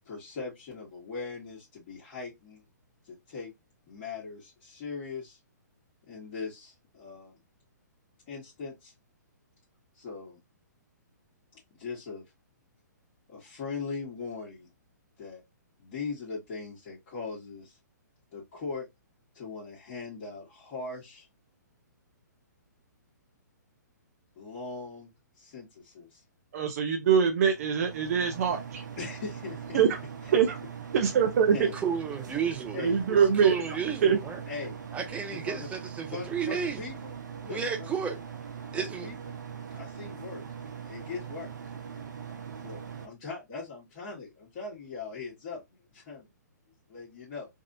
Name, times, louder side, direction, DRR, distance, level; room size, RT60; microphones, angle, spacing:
voice 1, 0.0-2.6 3.0-3.5 3.9-5.4 6.1-7.4 8.3-8.9 9.9-10.4 11.7-12.3 13.3-14.7 15.2-15.4 15.8-17.8 18.3-18.9 19.3-21.3 24.3-25.1 25.4-26.2 29.0-29.8 30.2-30.4 31.5-31.8 32.7-32.9 34.4-34.8 35.3-35.7 36.1-37.2 37.4-37.9 38.7-39.4 39.7-41.5 42.6-45.6 45.9-46.3 46.9-47.5, left 4 dB, 35° left, 1.7 m, -40 dB
voice 2, 26.5-28.8 29.7-30.0 30.3-30.6 30.9-31.7 32.8-33.5 34.0-34.2, right 7 dB, 55° right, 0.6 m, -23 dB
sound 1, 27.4-43.1, right 7 dB, 75° right, 0.9 m, -41 dB
voice 3, 31.7-32.8 33.1-34.4 34.9-36.8 37.5-38.2 38.7-39.1, right 7 dB, 15° right, 0.7 m, -32 dB
3.4 x 2.4 x 2.6 m
hypercardioid pair, 135°, 10 cm